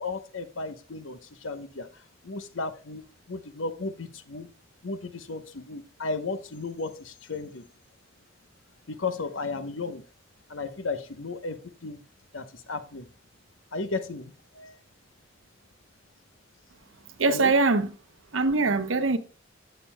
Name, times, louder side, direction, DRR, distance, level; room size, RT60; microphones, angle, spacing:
voice 1, 0.0-1.9 2.2-3.0 3.3-4.5 4.8-7.6 8.9-10.0 10.5-12.0 12.3-13.1 13.7-14.8 17.3-17.5, left 3 dB, 85° left, 1.0 m, -34 dB
voice 2, 17.2-17.9 18.3-19.2, right 3 dB, 80° right, 0.9 m, -22 dB
16.5 x 6.7 x 2.2 m
head